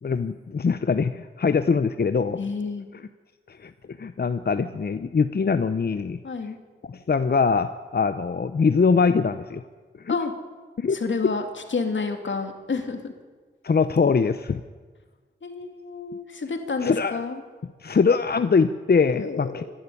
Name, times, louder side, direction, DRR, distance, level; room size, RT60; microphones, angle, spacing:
voice 1, 0.0-2.4 3.5-3.7 4.0-6.2 6.9-9.6 10.0-10.2 10.8-11.0 13.6-14.6 16.8-17.2 17.8-19.6, left 5 dB, 55° left, 11 dB, 0.7 m, -22 dB
voice 2, 2.4-2.9 6.2-6.6 10.1-10.3 10.9-13.1 15.4-17.4 19.1-19.6, left 4 dB, 85° left, 6 dB, 2.4 m, -29 dB
25.5 x 11.5 x 9.9 m, 1.4 s
wide cardioid pair, 75°, 19 cm